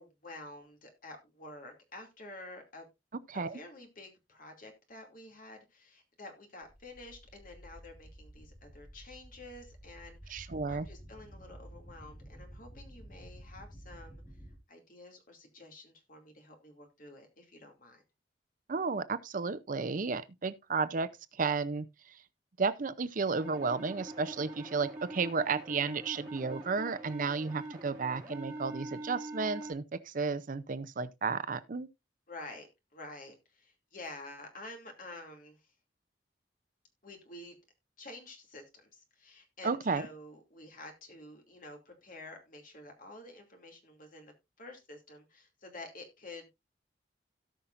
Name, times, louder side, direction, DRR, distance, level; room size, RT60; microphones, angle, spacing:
voice 1, 0.0-2.9 3.3-14.2 14.7-18.0 32.3-35.7 37.0-37.6 38.0-46.6, left 2 dB, 50° left, 2.6 m, -50 dB
voice 2, 3.3-3.6 10.3-10.9 18.7-22.2 22.6-31.9 39.6-40.1, right 4 dB, 50° right, 0.6 m, -33 dB
sound 1, 6.6-14.6, equal, 10° left, 1.4 m, -51 dB
sound 2, 23.4-29.7, right 1 dB, 10° right, 4.7 m, -44 dB
17.5 x 5.8 x 2.5 m
head